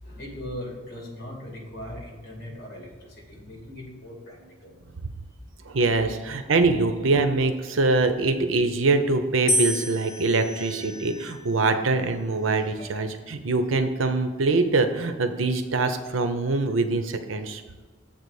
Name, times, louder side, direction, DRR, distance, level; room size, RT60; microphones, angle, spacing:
voice 1, 0.0-4.7 12.8-12.9 13.3-13.4, left 1 dB, 50° left, -1 dB, 2.3 m, -39 dB
voice 2, 5.6-17.6, right 3 dB, 85° right, 8 dB, 0.7 m, -23 dB
sound 1, 9.5-11.7 12.5-13.0, left 1 dB, 70° left, 1.1 m, -30 dB
7.5 x 4.0 x 6.4 m, 1.5 s
head